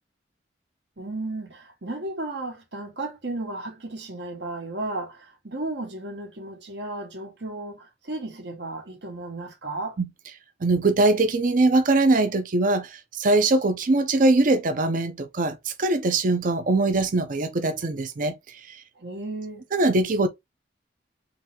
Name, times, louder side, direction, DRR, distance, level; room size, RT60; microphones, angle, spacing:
voice 1, 1.0-10.0 18.9-19.6, right 2 dB, 75° right, 1.5 m, -34 dB
voice 2, 10.6-18.8 19.7-20.3, right 2 dB, 50° right, 0.5 m, -22 dB
3.9 x 3.2 x 2.8 m
head